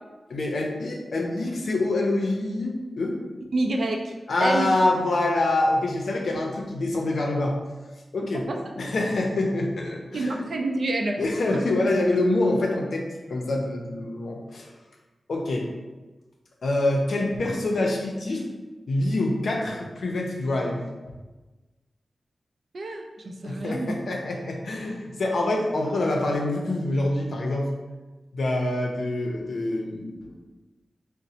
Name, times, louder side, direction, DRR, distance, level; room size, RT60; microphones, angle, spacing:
voice 1, 0.3-3.2 4.3-7.6 8.1-8.4 8.8-10.4 11.2-13.0 13.3-14.7 15.3-15.7 16.6-18.5 18.9-20.9 23.4-27.7 28.3-30.4, left 2 dB, 75° left, 0 dB, 0.5 m, -25 dB
voice 2, 3.5-4.1 4.4-4.8 8.3-8.6 10.1-11.2 22.7-24.0, right 2 dB, 70° right, 2 dB, 0.4 m, -27 dB
4.0 x 2.1 x 2.7 m, 1.2 s
wide cardioid pair, 70°, 0 cm